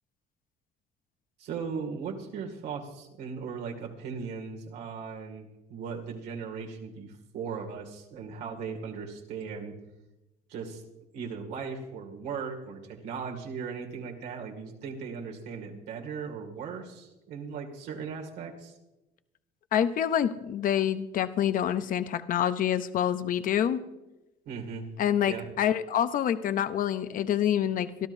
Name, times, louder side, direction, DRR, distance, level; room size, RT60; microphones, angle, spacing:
voice 1, 1.4-9.7 10.5-10.8 11.1-18.7 24.5-24.9 25.3-25.5, right 5 dB, 85° right, 1 dB, 2.2 m, -38 dB
voice 2, 19.7-23.8 25.0-28.1, left 10 dB, 55° left, 12 dB, 0.7 m, -27 dB
25.0 x 12.5 x 2.7 m, 1.0 s
cardioid pair, 110°, 17 cm